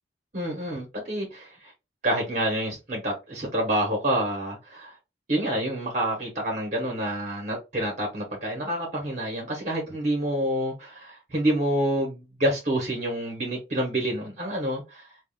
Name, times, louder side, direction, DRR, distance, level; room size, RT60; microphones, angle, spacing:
voice 1, 0.3-1.7 2.0-4.9 5.3-15.0, right 1 dB, 40° right, 1.0 m, -28 dB
3.5 x 2.3 x 2.3 m
head